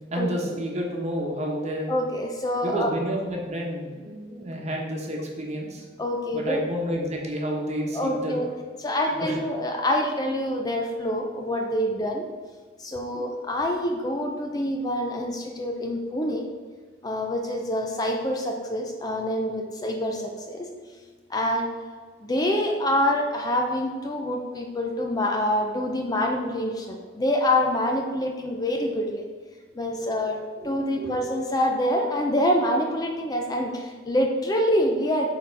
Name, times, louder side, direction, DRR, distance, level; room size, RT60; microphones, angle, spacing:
voice 1, 0.1-1.9 2.6-5.8 6.3-8.4 9.2-9.4 30.2-30.3 30.6-31.1, equal, 35° right, -1 dB, 1.1 m, -30 dB
voice 2, 1.9-2.9 6.0-6.6 7.9-8.5 8.8-12.2 12.8-16.4 17.0-20.7 21.3-21.7 22.2-29.3 29.8-35.3, left 1 dB, 20° left, 1 dB, 0.5 m, -26 dB
6.5 x 4.1 x 4.6 m, 1.5 s
head